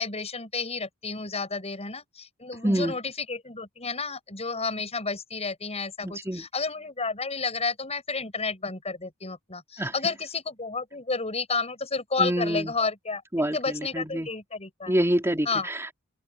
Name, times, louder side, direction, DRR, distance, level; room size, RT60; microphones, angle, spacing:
voice 1, 0.0-13.2 13.5-14.9 15.5-15.7, left 4 dB, 30° left, 7.2 m, -31 dB
voice 2, 2.6-3.0 6.0-6.5 9.8-9.9 12.2-12.8 13.3-14.3 14.9-15.9, right 1 dB, 10° right, 3.5 m, -27 dB
open air
head